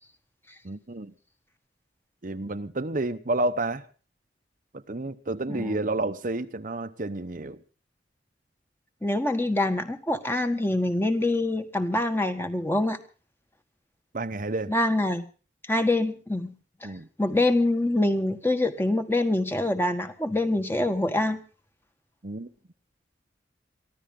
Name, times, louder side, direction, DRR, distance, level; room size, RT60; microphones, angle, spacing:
voice 1, 0.6-1.1 2.2-3.8 4.7-7.6 14.1-14.7 16.8-17.1 22.2-22.5, right 2 dB, 45° right, 0.8 m, -30 dB
voice 2, 9.0-13.0 14.7-15.2 15.7-16.5 16.8-16.9 17.2-21.4, left 2 dB, 10° left, 1.5 m, -25 dB
23.5 x 15.0 x 3.7 m
head